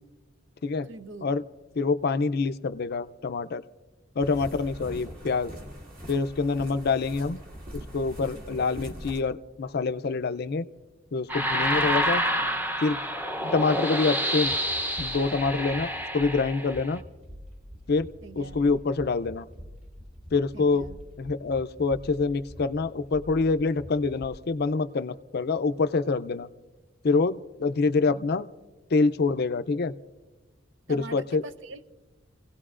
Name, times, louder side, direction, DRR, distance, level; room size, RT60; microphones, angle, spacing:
voice 1, 0.9-1.3 8.3-8.6 11.7-12.0 13.7-13.8 18.2-18.6 20.5-21.0 28.1-28.3 30.9-31.9, right 3 dB, 70° right, 11 dB, 0.7 m, -43 dB
voice 2, 1.8-3.6 4.2-5.5 6.1-7.4 7.7-10.6 11.1-12.2 12.8-13.0 13.4-14.5 15.0-17.0 17.9-18.1 18.4-19.5 20.3-20.8 21.2-26.5 27.0-28.5 28.9-29.9 30.9-31.4, left 4 dB, 55° left, 12 dB, 0.5 m, -26 dB
sound 1, 4.2-9.2, equal, 50° right, 2.0 m, -42 dB
sound 2, 11.3-17.0, equal, 10° right, 0.7 m, -28 dB
sound 3, 14.4-24.3, equal, 30° right, 2.1 m, -46 dB
29.0 x 17.0 x 2.5 m, 1.2 s
head